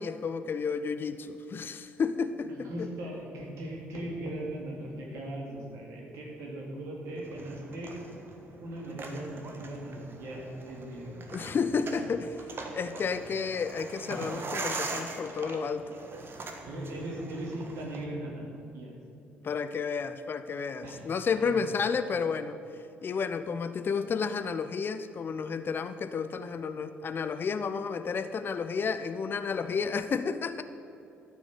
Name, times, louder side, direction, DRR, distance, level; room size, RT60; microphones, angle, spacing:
voice 1, 0.0-2.9 11.3-12.4 12.7-15.9 19.4-22.6 23.0-30.6, left 5 dB, 40° left, 11 dB, 0.6 m, -31 dB
voice 2, 2.6-7.9 8.6-11.5 11.8-12.0 16.6-18.9 20.8-21.0, right 1 dB, 60° right, -2 dB, 2.7 m, -39 dB
sound 1, 7.2-18.0, right 3 dB, 40° right, 1.5 m, -41 dB
13.5 x 6.2 x 8.6 m, 2.7 s
figure-of-eight pair, 45°, 6 cm